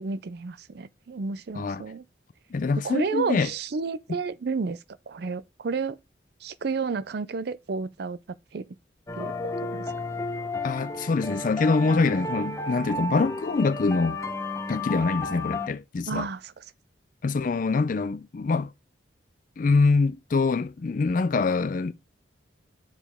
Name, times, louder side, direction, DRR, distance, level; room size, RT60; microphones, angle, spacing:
voice 1, 0.0-2.0 2.8-4.8 5.1-6.0 6.4-8.2 8.5-8.7 9.2-9.8 16.1-16.6, right 4 dB, 55° right, 0.4 m, -31 dB
voice 2, 2.5-3.5 10.6-14.2 14.7-16.3 17.2-18.7 19.6-21.9, left 4 dB, 45° left, 0.4 m, -24 dB
sound 1, 9.1-15.7, left 2 dB, 15° left, 0.8 m, -33 dB
6.7 x 5.1 x 3.5 m
head